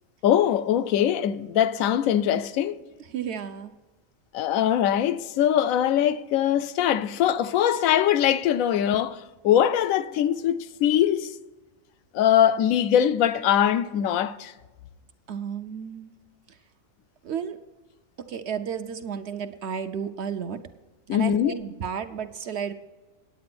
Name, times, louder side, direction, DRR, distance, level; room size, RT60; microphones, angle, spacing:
voice 1, 0.2-2.8 4.3-9.2 9.4-11.3 12.1-14.5 21.1-21.6, left 10 dB, 80° left, 1.0 m, -22 dB
voice 2, 3.1-3.7 15.3-16.1 17.2-17.6 18.2-20.6 21.1-22.7, right 7 dB, 60° right, 0.8 m, -32 dB
9.4 x 8.8 x 6.0 m
omnidirectional pair, 1.4 m